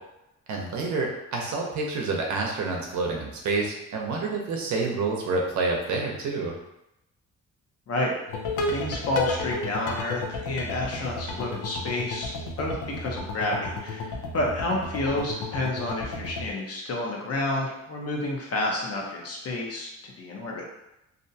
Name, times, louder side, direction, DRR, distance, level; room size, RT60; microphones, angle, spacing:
voice 1, 0.5-6.5, right 3 dB, 70° right, 0 dB, 0.7 m, -28 dB
sound 1, 8.3-16.5, left 2 dB, 85° left, 0.5 m, -33 dB
voice 2, 8.7-20.6, left 1 dB, 55° left, -2 dB, 0.8 m, -30 dB
2.6 x 2.2 x 2.7 m, 0.87 s
cardioid pair, 90°, 30 cm